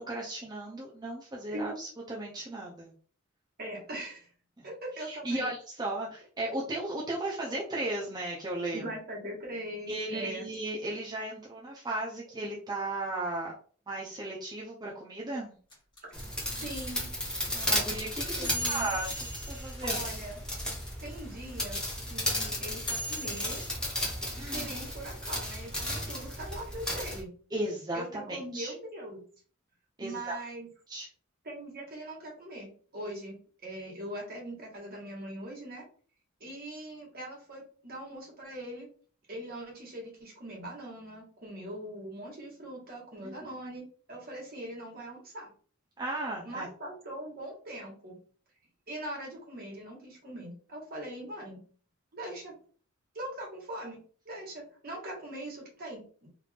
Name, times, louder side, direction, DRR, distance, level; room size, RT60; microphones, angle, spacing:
voice 1, 0.1-2.9 4.6-4.7 5.0-8.8 9.9-13.5 13.9-15.5 17.5-20.1 24.4-24.7 26.2-26.3 27.5-28.7 30.0-30.3 30.9-31.1 43.2-43.3 46.0-46.7, right 2 dB, 20° right, -4 dB, 0.7 m, -35 dB
voice 2, 3.6-4.3 4.6-5.5 8.7-10.5 16.6-17.1 18.4-18.9 19.8-20.4 21.0-21.8 22.1-23.6 24.4-27.3 27.9-29.2 30.0-30.7 31.4-35.8 36.4-38.9 39.3-43.8 44.1-45.5 46.4-48.2 48.9-51.6 52.1-52.5 53.1-54.0 54.2-56.3, right 1 dB, 50° right, -3 dB, 1.6 m, -41 dB
sound 1, 15.7-20.8 21.1-21.2 21.4-23.7, equal, 25° left, 1.5 m, -39 dB
sound 2, 16.1-27.2, left 1 dB, 5° left, 1.0 m, -34 dB
3.3 x 2.6 x 3.3 m, 0.43 s
head